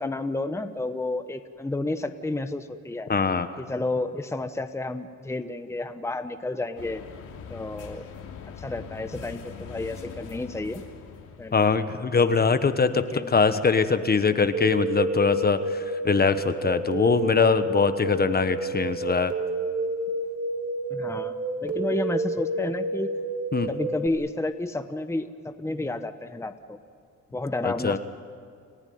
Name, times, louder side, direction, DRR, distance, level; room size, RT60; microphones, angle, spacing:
voice 1, 0.0-3.1 3.6-7.0 7.5-8.1 8.6-10.8 11.4-11.6 12.9-13.3 20.9-23.1 23.7-26.8 27.3-28.0, left 2 dB, 10° left, 9 dB, 1.1 m, -31 dB
voice 2, 3.1-3.5 11.5-19.3 23.5-23.7 27.6-28.0, left 5 dB, 30° left, 11 dB, 1.2 m, -22 dB
sound 1, 6.8-11.8, left 7 dB, 85° left, 3.2 m, -42 dB
sound 2, 14.5-24.1, right 2 dB, 55° right, 2.8 m, -30 dB
30.0 x 15.0 x 9.4 m, 2.3 s
cardioid pair, 90°, 30 cm